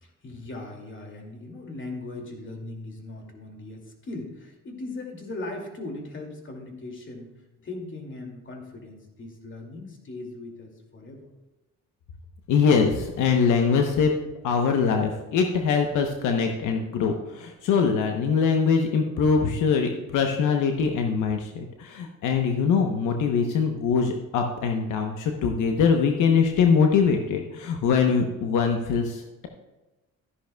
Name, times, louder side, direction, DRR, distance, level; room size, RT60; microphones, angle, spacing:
voice 1, 0.0-7.3 7.6-11.3, left 2 dB, 40° left, 2 dB, 2.4 m, -39 dB
voice 2, 12.5-14.1 14.4-29.5, left 5 dB, 85° left, 4 dB, 0.9 m, -23 dB
13.0 x 10.5 x 2.3 m, 1.1 s
cardioid pair, 90°, 30 cm